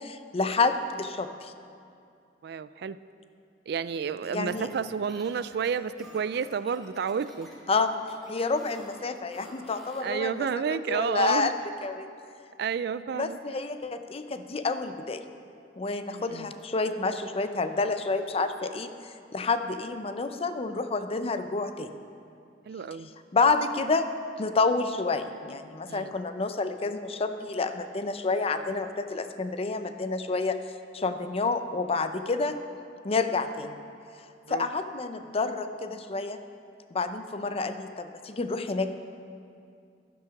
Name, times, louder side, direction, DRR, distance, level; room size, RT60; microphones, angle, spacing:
voice 1, 0.0-1.5 4.3-4.7 7.7-7.9 8.3-10.3 10.9-11.5 11.8-12.1 13.2-15.2 15.8-18.9 19.3-21.9 23.3-24.1 24.4-30.6 30.9-32.6 33.0-33.8 34.5-36.4 36.9-38.9, left 3 dB, 35° left, 9 dB, 0.6 m, -29 dB
voice 2, 2.4-3.0 3.7-7.5 10.0-11.5 12.6-13.4 16.1-16.5 22.7-23.1 25.9-26.1 34.5-34.7, right 6 dB, 65° right, 15 dB, 0.4 m, -31 dB
sound 1, 4.3-10.2, equal, ahead, 1.9 m, -50 dB
11.5 x 9.7 x 5.8 m, 2.4 s
head